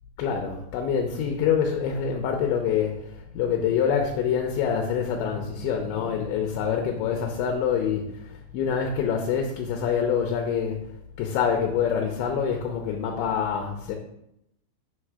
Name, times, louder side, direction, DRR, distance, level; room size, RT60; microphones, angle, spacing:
voice 1, 0.2-13.9, left 7 dB, 80° left, 2 dB, 2.7 m, -26 dB
7.6 x 6.4 x 4.8 m, 0.79 s
omnidirectional pair, 6.0 m